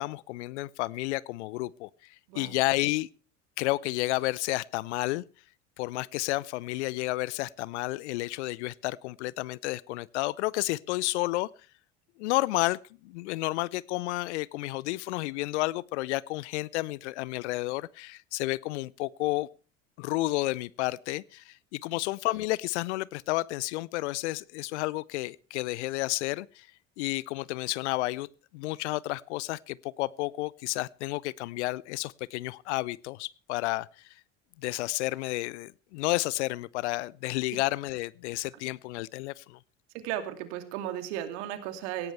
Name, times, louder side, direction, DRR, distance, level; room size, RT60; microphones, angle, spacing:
voice 1, 0.0-3.1 3.6-5.2 5.8-11.5 12.2-19.5 20.0-26.7 27.0-28.3 28.5-33.9 34.6-39.6, left 20 dB, 65° left, 0.7 m, -31 dB
voice 2, 39.9-42.1, right 11 dB, 60° right, 2.7 m, -35 dB
18.0 x 16.5 x 3.3 m
figure-of-eight pair, 70°, 38 cm